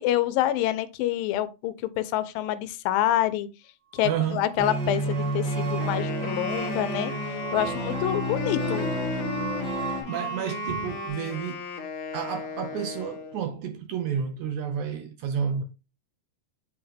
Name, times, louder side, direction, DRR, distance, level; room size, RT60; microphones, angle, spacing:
voice 1, 0.0-3.5 3.9-7.1 7.5-8.9, left 12 dB, 90° left, 2.4 m, -27 dB
sound 1, 3.9-11.1, right 10 dB, 60° right, 1.3 m, -39 dB
voice 2, 4.0-4.5 10.1-11.7 12.1-15.6, right 8 dB, 80° right, 1.8 m, -30 dB
sound 2, 4.6-10.0, right 2 dB, 45° right, 1.8 m, -30 dB
Wind instrument woodwind instrument, 5.7-13.4, left 7 dB, 70° left, 2.3 m, -36 dB
7.8 x 3.5 x 3.4 m
omnidirectional pair, 4.0 m